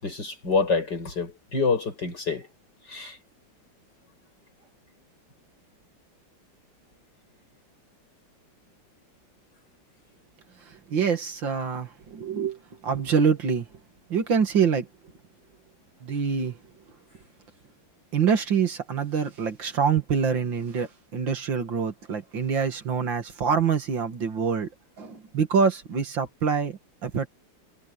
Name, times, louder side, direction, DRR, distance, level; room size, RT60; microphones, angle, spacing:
voice 1, 0.0-2.5 2.9-3.2, left 4 dB, 65° left, 6.8 m, -27 dB
voice 2, 10.7-13.7 14.1-14.9 16.0-16.6 18.1-24.7 25.0-27.3, right 6 dB, 75° right, 2.8 m, -25 dB
omnidirectional pair, 2.1 m